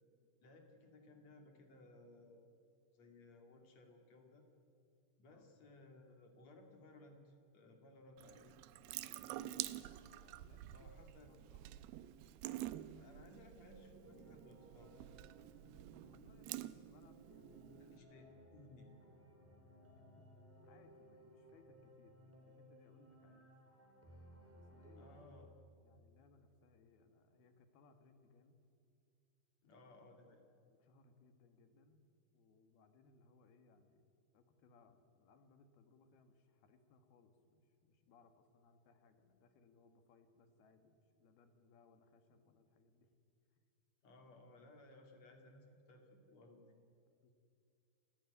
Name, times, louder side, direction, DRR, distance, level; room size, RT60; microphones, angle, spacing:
voice 1, 0.4-2.5 2.9-4.4 5.2-9.5 10.7-11.3 12.9-15.1 17.8-18.9 24.9-25.5 29.6-30.5 44.0-46.8, left 2 dB, 45° left, 4 dB, 3.2 m, -61 dB
Water tap faucet / Sink (filling or washing) / Drip, 8.2-18.0, right 14 dB, 80° right, 2.4 m, -49 dB
voice 2, 8.8-12.0 16.0-17.9 19.9-20.3 20.6-23.5 24.1-24.3 24.5-28.6 29.6-30.1 30.7-32.1 32.3-34.1 34.3-43.1 47.2-47.3, left 4 dB, 70° left, 8 dB, 3.4 m, -68 dB
sound 1, 14.0-25.2, equal, 5° right, 2.6 m, -62 dB
28.5 x 15.5 x 9.6 m, 2.5 s
omnidirectional pair, 4.7 m